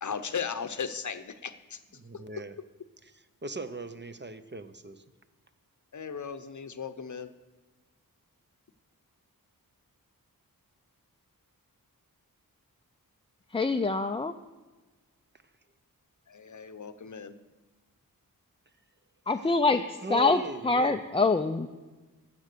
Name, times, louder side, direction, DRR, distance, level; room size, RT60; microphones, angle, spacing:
voice 1, 0.0-1.8 5.9-7.3 16.3-17.4, left 6 dB, 55° left, 11 dB, 0.7 m, -36 dB
voice 2, 2.0-2.5 3.0-5.0 20.0-21.0, right 1 dB, 30° right, 11 dB, 0.6 m, -39 dB
voice 3, 13.5-14.3 19.3-21.7, left 3 dB, 15° left, 7 dB, 0.3 m, -25 dB
12.5 x 7.5 x 6.7 m, 1.2 s
wide cardioid pair, 95°, 36 cm